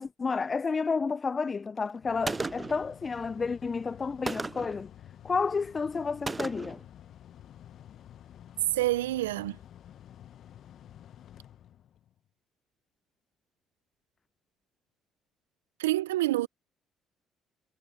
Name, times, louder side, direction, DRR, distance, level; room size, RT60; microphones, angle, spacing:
voice 1, 0.0-4.9 5.2-6.8, left 4 dB, 35° left, 0.5 m, -31 dB
Mechanical fan, 1.7-12.2, left 11 dB, 60° left, 1.0 m, -51 dB
Gunshot gunfire, 2.3-2.9 4.3-4.8 6.3-6.8, right 3 dB, 25° right, 0.3 m, -34 dB
voice 2, 8.7-9.6 15.8-16.5, right 17 dB, 85° right, 0.5 m, -27 dB
hypercardioid pair, 50°, 0 cm